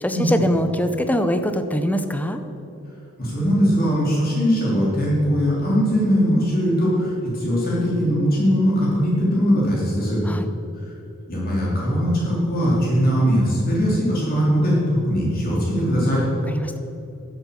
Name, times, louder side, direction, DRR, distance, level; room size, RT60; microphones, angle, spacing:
voice 1, 0.0-2.4 10.2-10.5 16.5-16.8, equal, 5° left, 8 dB, 0.6 m, -23 dB
voice 2, 3.2-10.2 11.3-16.2, equal, 45° left, -6 dB, 3.2 m, -20 dB
12.0 x 7.3 x 7.0 m, 2.8 s
head